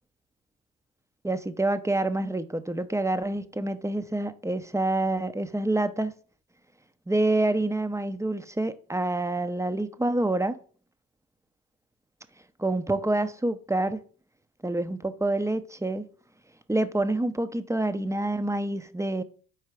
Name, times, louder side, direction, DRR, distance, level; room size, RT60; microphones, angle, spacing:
voice 1, 1.2-6.1 7.1-10.6 12.6-14.0 14.6-16.1 16.7-19.2, right 2 dB, 5° right, 0.6 m, -27 dB
4.7 x 4.4 x 4.7 m
hypercardioid pair, 45°, 45 cm